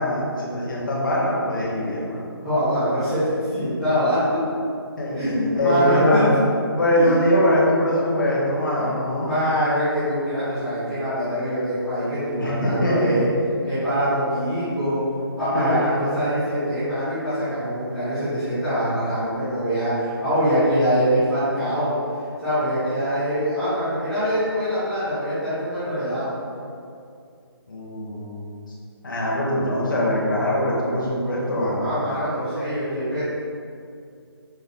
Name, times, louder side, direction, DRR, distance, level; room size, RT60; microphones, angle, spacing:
voice 1, 0.0-2.2 5.0-6.3 6.8-9.3 12.4-13.2 15.5-15.8 27.7-28.4 29.0-31.9, left 1 dB, 50° left, -5 dB, 1.0 m, -22 dB
voice 2, 2.4-3.2 3.5-4.2 5.1-6.2 6.9-7.1 8.7-8.9 9.2-13.2 13.6-15.0 15.4-21.9 22.4-26.3 31.8-33.2, equal, ahead, -21 dB, 0.5 m, -24 dB
5.3 x 2.1 x 3.7 m, 2.4 s
hypercardioid pair, 175°, 13 cm